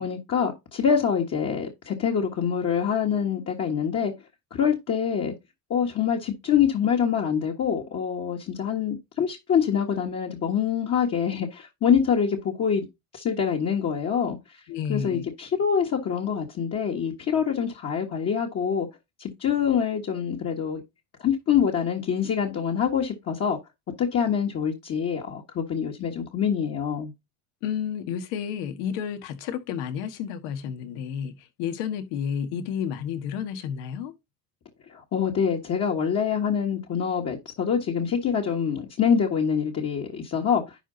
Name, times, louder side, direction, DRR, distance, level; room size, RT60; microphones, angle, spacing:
voice 1, 0.0-4.1 4.5-5.3 5.7-12.9 13.1-14.4 14.9-18.9 19.2-20.8 21.2-23.6 24.0-27.1 34.9-40.7, left 7 dB, 35° left, 1.6 m, -25 dB
voice 2, 14.7-15.3 27.6-31.3 31.6-34.1, left 8 dB, 80° left, 1.7 m, -31 dB
11.0 x 4.4 x 4.0 m
cardioid pair, 140°, 41 cm